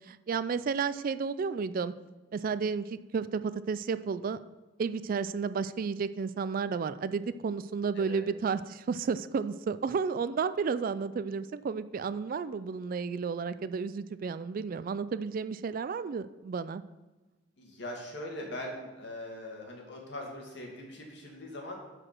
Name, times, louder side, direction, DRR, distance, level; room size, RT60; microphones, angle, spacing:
voice 1, 0.1-1.9 2.3-4.4 4.8-16.8, right 5 dB, 50° right, 14 dB, 0.3 m, -32 dB
voice 2, 17.6-21.9, left 1 dB, 65° left, 0 dB, 2.3 m, -41 dB
10.0 x 5.0 x 6.0 m, 1.2 s
head